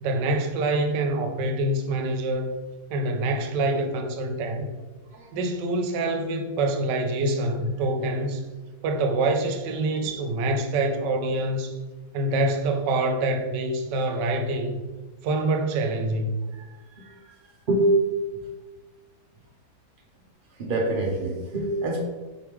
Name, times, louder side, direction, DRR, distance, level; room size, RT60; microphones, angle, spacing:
voice 1, 0.0-2.5 2.9-4.7 5.3-8.4 8.8-11.8 12.1-14.8 15.2-16.3, right 2 dB, 85° right, 1.2 m, -25 dB
voice 2, 17.0-17.4 17.7-17.9 18.3-18.4 20.6-22.0, right 1 dB, 60° right, 0.5 m, -26 dB
4.6 x 3.5 x 3.0 m
omnidirectional pair, 1.8 m